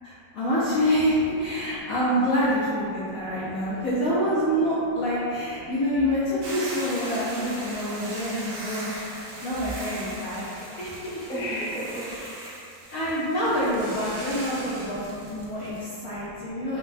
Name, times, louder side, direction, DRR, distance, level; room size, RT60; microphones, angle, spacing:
voice 1, 0.0-8.9 9.4-11.2 12.5-12.6 12.9-16.8, equal, 70° left, -9 dB, 0.8 m, -26 dB
voice 2, 2.9-3.8 5.6-5.7 8.0-8.2 8.5-9.5 10.1-10.8 11.3-12.2 12.8-13.5 14.2-16.8, equal, 5° left, -12 dB, 0.4 m, -40 dB
Hiss / Boiling, 6.4-15.8, right 1 dB, 65° right, 1.0 m, -39 dB
4.7 x 2.1 x 2.5 m, 2.5 s
omnidirectional pair, 2.0 m